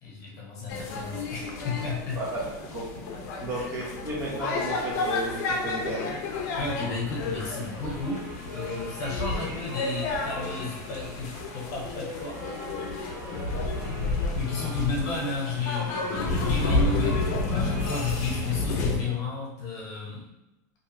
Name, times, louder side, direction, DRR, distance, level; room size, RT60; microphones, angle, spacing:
voice 1, 0.0-2.2 3.5-3.7 6.6-8.2 8.5-12.4 14.3-20.2, left 4 dB, 40° left, -4 dB, 0.9 m, -32 dB
sound 1, 0.7-19.0, left 3 dB, 60° left, 0.5 m, -31 dB
voice 2, 2.1-3.0 3.4-6.1, right 1 dB, 25° right, -6 dB, 0.6 m, -33 dB
sound 2, 7.2-18.5, equal, 70° right, 1.2 m, -44 dB
2.7 x 2.3 x 3.0 m, 0.98 s
supercardioid pair, 160°, 10 cm